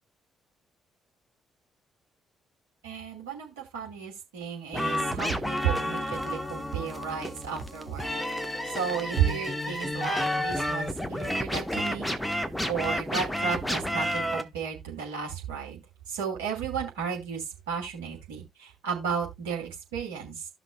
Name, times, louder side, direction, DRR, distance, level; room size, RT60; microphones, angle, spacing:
voice 1, 2.8-8.2 8.7-12.2 12.7-15.8 16.1-20.5, right 7 dB, 70° right, 2.8 m, -33 dB
sound 1, 4.7-14.4, left 1 dB, 5° left, 1.2 m, -31 dB
15.0 x 6.0 x 2.3 m
figure-of-eight pair, 45°, 0 cm